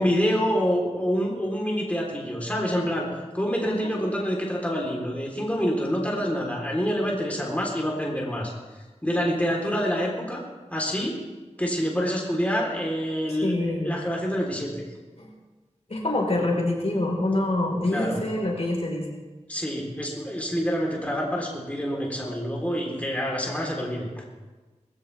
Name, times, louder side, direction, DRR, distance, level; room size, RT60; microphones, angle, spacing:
voice 1, 0.0-8.5 9.0-10.4 10.7-11.2 11.6-14.7 17.9-18.2 19.5-24.2, equal, 10° left, -2 dB, 3.7 m, -27 dB
voice 2, 13.3-14.0 15.2-15.3 15.9-19.1, left 1 dB, 55° left, -2 dB, 4.5 m, -26 dB
20.0 x 16.0 x 3.5 m, 1.2 s
wide cardioid pair, 55°, 12 cm